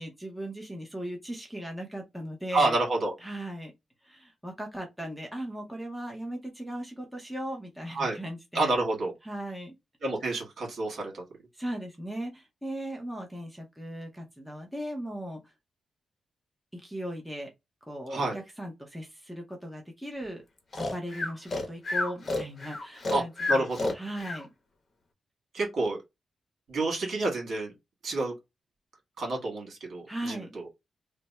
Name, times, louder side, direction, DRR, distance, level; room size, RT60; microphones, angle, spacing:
voice 1, 0.0-2.8 3.2-3.7 4.0-8.7 9.2-9.7 11.6-15.4 16.7-17.5 17.9-20.4 20.9-23.7 23.9-24.5 30.1-30.5, right 1 dB, ahead, 0.7 m, -38 dB
voice 2, 2.5-3.1 7.9-8.2 8.5-9.1 10.0-11.2 18.1-18.4 23.1-23.9 25.5-26.0 26.7-27.7 28.0-28.3 29.2-30.7, right 2 dB, 60° right, 1.9 m, -29 dB
Breathing, 20.7-24.4, left 2 dB, 35° left, 0.8 m, -30 dB
3.3 x 2.0 x 4.1 m
wide cardioid pair, 170°, 0 cm